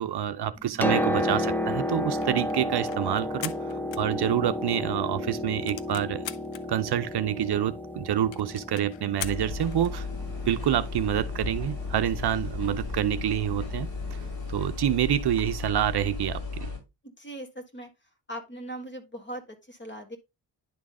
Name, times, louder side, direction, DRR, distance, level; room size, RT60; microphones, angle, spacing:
voice 1, 0.0-6.2 6.7-10.1 10.5-14.2 14.5-16.7, right 11 dB, 60° right, 0.6 m, -27 dB
Piano, 0.6-14.3 15.4-15.5, left 1 dB, 5° left, 0.7 m, -33 dB
sound 1, 2.0-4.7 5.0-5.1 5.4-6.6 7.2-7.3 7.5-7.6 7.9-8.0 8.3-10.0, left 11 dB, 80° left, 0.7 m, -41 dB
sound 2, 9.2-16.8, left 4 dB, 55° left, 5.4 m, -35 dB
voice 2, 17.0-17.9 18.3-20.2, right 1 dB, 25° left, 1.8 m, -40 dB
10.5 x 3.8 x 3.6 m
cardioid pair, 105°, 44 cm